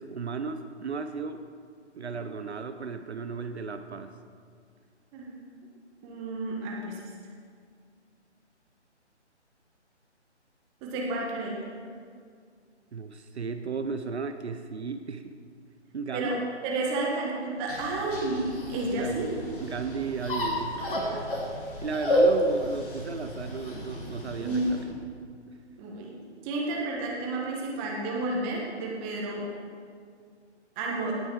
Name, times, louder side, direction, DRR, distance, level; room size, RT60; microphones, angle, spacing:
voice 1, 0.0-1.5 1.9-4.1 12.9-15.4 15.9-16.5 18.9-19.3 19.6-21.2 21.6-25.0, right 5 dB, 65° right, 8 dB, 0.8 m, -35 dB
voice 2, 6.0-7.0 10.8-11.6 16.1-16.4 16.6-19.3 20.8-21.4 24.4-24.7 25.8-26.1 26.4-29.4 30.8-31.1, right 2 dB, 15° right, -2 dB, 1.4 m, -31 dB
sound 1, 17.7-24.8, equal, 45° left, 3.0 m, -30 dB
18.0 x 6.2 x 4.8 m, 2.1 s
figure-of-eight pair, 145°, 35 cm